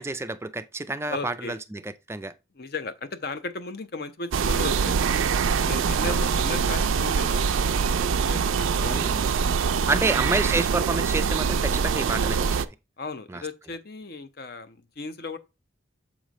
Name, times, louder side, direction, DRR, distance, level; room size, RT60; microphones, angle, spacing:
voice 1, 0.0-2.3 6.1-6.2 8.8-9.3 9.9-12.7 13.3-13.4, right 2 dB, 15° right, 0.3 m, -29 dB
voice 2, 1.0-1.6 2.5-5.2 5.6-9.2 9.7-10.1 13.0-15.4, left 3 dB, 50° left, 0.6 m, -36 dB
sound 1, 4.3-12.7, right 6 dB, 80° right, 0.4 m, -24 dB
7.2 x 3.1 x 5.1 m
head